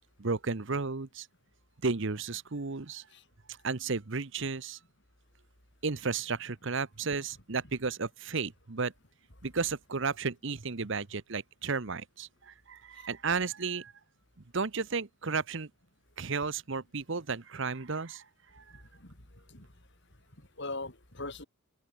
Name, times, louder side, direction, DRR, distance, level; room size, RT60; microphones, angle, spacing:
voice 1, 0.2-1.3 1.8-3.0 3.6-4.8 5.8-8.9 9.4-13.9 14.5-15.7 16.2-18.2 18.5-18.8, right 4 dB, 60° right, 1.0 m, -33 dB
voice 2, 18.7-19.7 20.6-21.4, left 2 dB, 55° left, 4.9 m, -41 dB
head